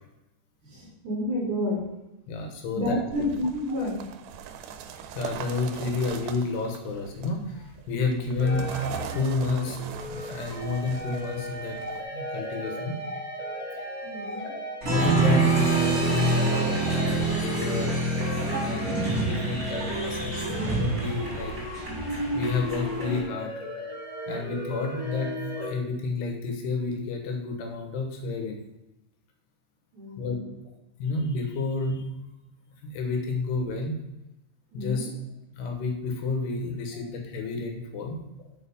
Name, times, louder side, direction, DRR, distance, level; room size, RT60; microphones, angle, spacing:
voice 1, 0.6-1.8 2.7-4.0 14.0-14.5 29.9-30.5 34.7-35.1 36.9-37.0, left 1 dB, 50° right, -3 dB, 3.4 m, -30 dB
voice 2, 2.3-3.0 5.1-8.7 9.1-9.8 10.1-11.8 12.1-13.0 14.4-17.9 18.6-21.5 22.3-23.5 24.3-28.6 30.2-30.4 31.0-32.1 32.9-34.0 34.7-35.1 35.6-38.2, left 3 dB, 75° left, 2 dB, 3.3 m, -30 dB
sound 1, 3.1-12.0, right 7 dB, 90° right, 2.8 m, -40 dB
sound 2, 8.4-25.7, equal, 15° left, 1.2 m, -36 dB
Applause, 14.8-23.2, right 2 dB, 25° right, 2.6 m, -26 dB
6.8 x 6.3 x 5.4 m, 0.97 s
omnidirectional pair, 4.8 m